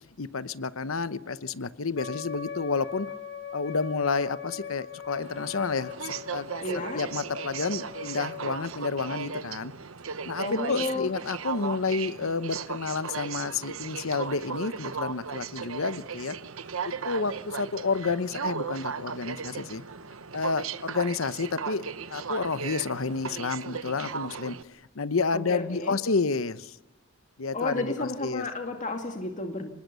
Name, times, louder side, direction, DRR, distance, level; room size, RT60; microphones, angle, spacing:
voice 1, 0.2-3.1 3.5-6.5 6.9-9.7 10.3-16.3 16.8-19.8 20.3-21.8 22.1-26.8 27.4-28.5, left 4 dB, 80° left, 14 dB, 0.9 m, -30 dB
Wind instrument woodwind instrument, 1.9-8.5, left 8 dB, 60° left, 1.6 m, -40 dB
Aircraft, 5.2-24.6, right 6 dB, 85° right, 1.0 m, -36 dB
voice 2, 6.6-7.0 10.4-11.1 25.3-25.9 27.5-29.7, left 2 dB, 40° left, 3 dB, 2.2 m, -32 dB
26.5 x 20.0 x 6.9 m, 1.0 s
head